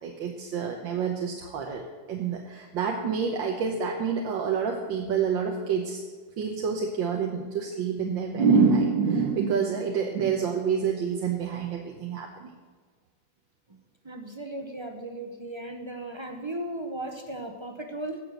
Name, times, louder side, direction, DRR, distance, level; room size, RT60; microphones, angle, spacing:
voice 1, 0.0-6.0 6.4-12.5, right 5 dB, 80° right, 1 dB, 1.7 m, -27 dB
voice 2, 14.0-18.2, right 1 dB, 40° right, 4 dB, 0.4 m, -36 dB
16.0 x 6.9 x 6.5 m, 1.5 s
omnidirectional pair, 2.1 m